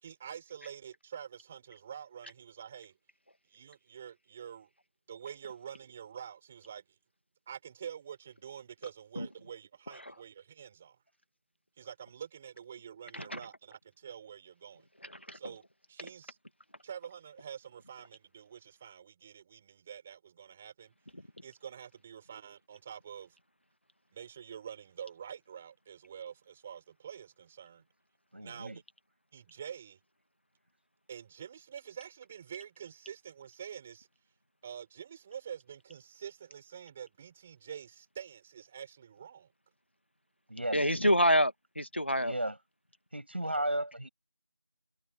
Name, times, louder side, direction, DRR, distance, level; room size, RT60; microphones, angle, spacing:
voice 1, 0.0-3.0 3.5-4.7 5.1-7.0 7.5-11.0 11.8-14.9 15.3-15.6 15.9-16.4 16.8-20.9 21.4-23.4 24.1-27.8 28.4-28.8 29.3-30.0 31.1-34.1 34.6-39.5 43.6-43.7, right 8 dB, 5° right, 6.0 m, -47 dB
voice 2, 28.3-28.8 40.5-40.9 42.2-42.6 43.1-44.1, right 1 dB, 30° right, 7.7 m, -34 dB
voice 3, 40.7-42.3, equal, 30° left, 1.6 m, -27 dB
figure-of-eight pair, 180°, 11 cm